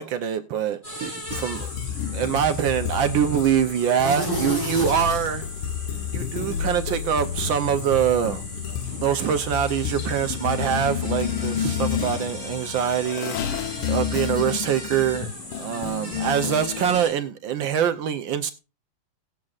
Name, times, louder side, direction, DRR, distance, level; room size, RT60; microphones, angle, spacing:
voice 1, 0.0-1.7 2.1-5.4 6.1-8.4 9.0-15.3 15.6-18.5, right 9 dB, 70° right, 1.3 m, -24 dB
sound 1, 0.8-17.1, equal, 25° left, 7.7 m, -36 dB
sound 2, 1.3-17.0, left 9 dB, 85° left, 1.6 m, -30 dB
17.5 x 7.5 x 2.4 m
omnidirectional pair, 2.3 m